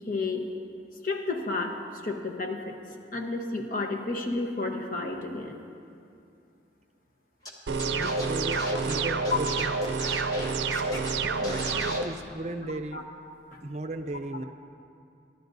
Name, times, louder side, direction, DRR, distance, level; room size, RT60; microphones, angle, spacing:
voice 1, 0.1-0.4 1.0-1.8 2.0-2.7 3.1-5.6 9.3-9.4 11.7-11.8 12.9-13.0, left 3 dB, 50° left, 2 dB, 1.0 m, -31 dB
Scratching (performance technique), 7.5-7.6 7.8-11.1 11.4-12.0, left 1 dB, 20° left, 1.3 m, -38 dB
sound 1, 7.7-12.1, right 4 dB, 85° right, 0.6 m, -28 dB
voice 2, 8.0-9.8 11.2-13.0 13.6-14.4, right 2 dB, 40° right, 7 dB, 0.6 m, -36 dB
23.5 x 11.5 x 2.7 m, 2.5 s
head